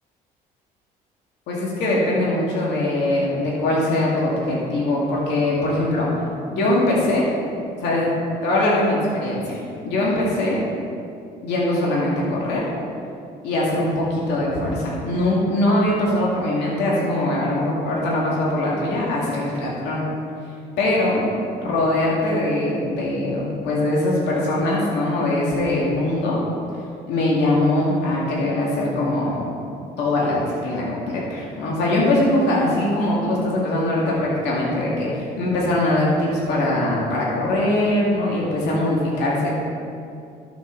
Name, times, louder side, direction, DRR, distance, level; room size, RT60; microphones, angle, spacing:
voice 1, 1.5-6.1 6.5-7.3 7.8-8.1 8.4-10.6 11.4-12.6 13.4-20.0 20.8-21.2 21.6-26.4 27.1-29.5 30.0-39.5, left 1 dB, 85° left, -5 dB, 2.3 m, -22 dB
12.0 x 8.0 x 4.0 m, 2.5 s
cardioid pair, 110°, 17 cm